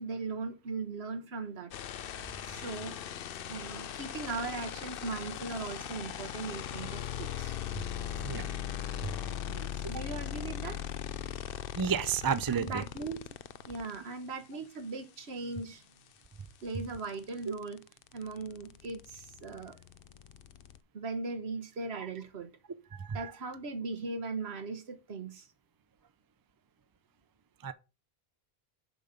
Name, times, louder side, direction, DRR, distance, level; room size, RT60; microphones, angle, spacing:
voice 1, 0.0-1.7 2.4-3.0 3.5-7.6 9.5-10.8 12.5-13.2 13.6-15.9 16.6-17.8 18.1-19.8 20.9-22.5 23.1-25.5, right 3 dB, 75° right, 1.4 m, -39 dB
sound 1, 1.7-14.0 16.1-16.2 16.4-20.8, left 10 dB, 65° left, 0.7 m, -39 dB
voice 2, 11.8-12.8 22.9-23.3 27.6-27.7, right 7 dB, 35° right, 0.4 m, -31 dB
7.0 x 5.3 x 5.6 m
omnidirectional pair, 1.1 m